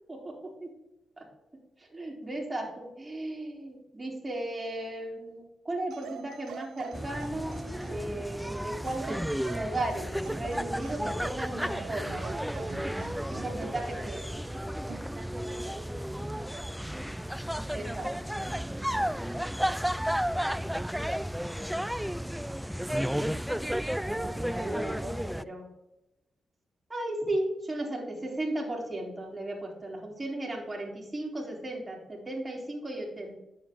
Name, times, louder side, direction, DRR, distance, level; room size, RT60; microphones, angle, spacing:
voice 1, 1.8-9.2 9.5-12.3 13.3-14.3 17.7-18.1 23.0-23.3 23.5-25.6 26.9-33.3, right 1 dB, 25° right, -2 dB, 3.3 m, -36 dB
sound 1, 5.9-8.2 8.8-11.2 11.6-13.8 14.9-15.1, right 7 dB, 85° right, 0.4 m, -45 dB
sound 2, 6.9-25.4, equal, 5° right, 0.3 m, -33 dB
voice 2, 13.4-17.2 17.7-19.1 19.5-21.1, right 1 dB, 40° right, -4 dB, 2.5 m, -49 dB
9.6 x 7.4 x 3.7 m, 0.93 s
cardioid pair, 55°, 0 cm